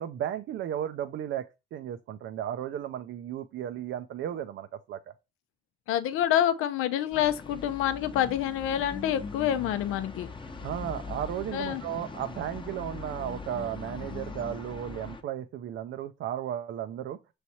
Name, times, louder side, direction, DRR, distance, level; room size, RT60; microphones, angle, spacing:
voice 1, 0.0-1.5 1.7-5.0 10.6-17.2, right 10 dB, 70° right, 0.4 m, -34 dB
voice 2, 5.9-10.3 11.5-11.8, left 11 dB, 85° left, 0.5 m, -27 dB
sound 1, 7.1-15.2, left 4 dB, 25° left, 0.8 m, -41 dB
5.9 x 3.2 x 2.7 m
supercardioid pair, 70°, 21 cm